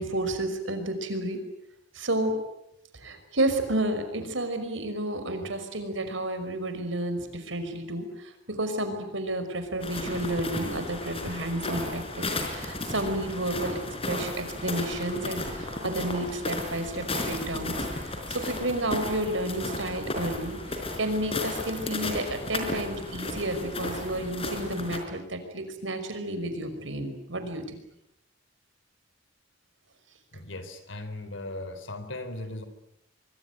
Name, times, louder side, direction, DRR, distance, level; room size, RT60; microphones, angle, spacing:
voice 1, 0.0-1.4 1.9-2.3 2.9-13.8 14.1-27.8, right 1 dB, 75° right, 8 dB, 5.5 m, -31 dB
sound 1, 9.8-25.0, left 2 dB, 30° left, 4.8 m, -34 dB
voice 2, 30.3-32.6, left 2 dB, 80° left, 11 dB, 4.1 m, -38 dB
24.5 x 24.0 x 9.3 m, 0.82 s
head